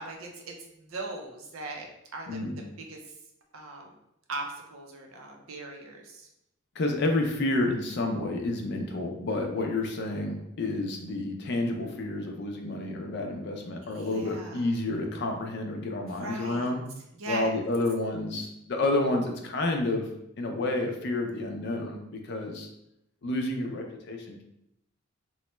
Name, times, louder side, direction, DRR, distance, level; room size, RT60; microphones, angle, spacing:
voice 1, 0.0-3.0 3.5-3.9 4.3-6.3 13.8-14.6 16.1-16.7 17.2-17.5, right 2 dB, 80° right, 2 dB, 0.6 m, -39 dB
voice 2, 6.8-16.8 17.3-20.1 20.4-22.7 23.2-24.4, left 2 dB, 55° left, 3 dB, 0.5 m, -30 dB
3.0 x 2.1 x 3.0 m, 0.82 s
head